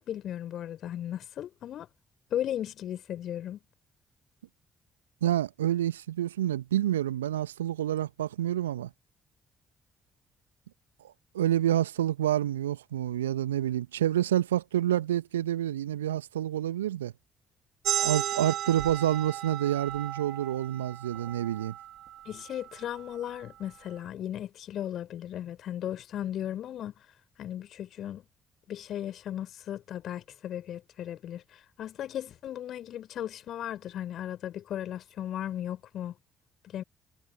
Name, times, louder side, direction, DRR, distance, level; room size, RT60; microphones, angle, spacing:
voice 1, 0.0-1.9 2.3-3.6 22.3-26.9 27.4-28.2 28.7-36.1 36.6-36.8, left 11 dB, 55° left, 4.1 m, -36 dB
voice 2, 5.2-8.9 11.3-17.1 18.0-21.7, right 12 dB, 80° right, 1.2 m, -28 dB
sound 1, 17.8-23.0, right 12 dB, 60° right, 2.5 m, -35 dB
figure-of-eight pair, 45°, 0 cm